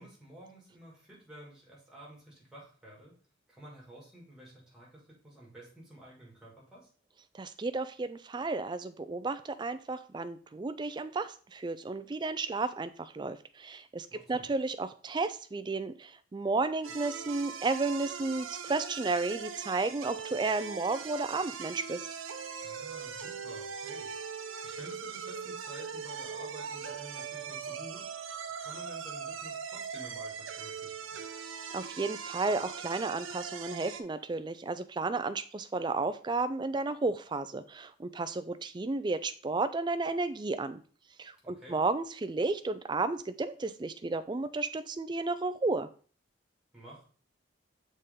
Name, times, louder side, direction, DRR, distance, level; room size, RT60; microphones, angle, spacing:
voice 1, 0.0-3.1 3.5-6.9 14.1-14.5 22.6-24.1 24.6-28.3 28.6-31.2 41.4-41.8 46.7-47.0, right 1 dB, 5° right, -4 dB, 2.2 m, -51 dB
voice 2, 7.3-22.1 31.7-40.8 41.2-45.9, right 3 dB, 25° right, 11 dB, 0.3 m, -33 dB
sound 1, 16.8-34.0, right 6 dB, 90° right, 0.6 m, -40 dB
6.8 x 4.2 x 3.7 m, 0.41 s
head